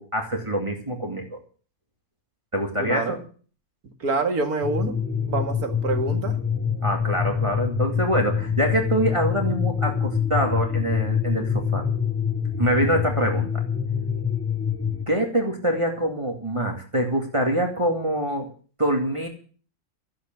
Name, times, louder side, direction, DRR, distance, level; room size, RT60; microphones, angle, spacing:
voice 1, 0.0-1.4 2.5-3.2 6.8-11.8 12.6-13.5 15.1-18.5 18.8-19.3, right 1 dB, 20° right, 1 dB, 2.4 m, -25 dB
voice 2, 2.9-3.2 4.0-6.4, right 3 dB, 85° right, 6 dB, 2.5 m, -27 dB
sound 1, 4.6-15.0, left 7 dB, 10° left, 0.9 m, -25 dB
14.0 x 8.2 x 9.0 m, 0.41 s
omnidirectional pair, 1.6 m